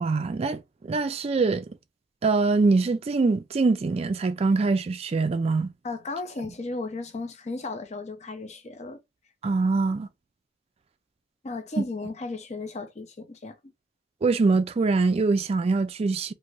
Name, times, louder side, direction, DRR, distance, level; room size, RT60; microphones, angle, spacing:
voice 1, 0.0-1.7 2.2-5.7 9.4-10.1 11.8-11.9 14.2-16.3, right 3 dB, 35° right, 0.3 m, -23 dB
voice 2, 5.8-9.0 11.4-13.6, left 3 dB, 40° left, 0.6 m, -35 dB
2.6 x 2.5 x 3.0 m
head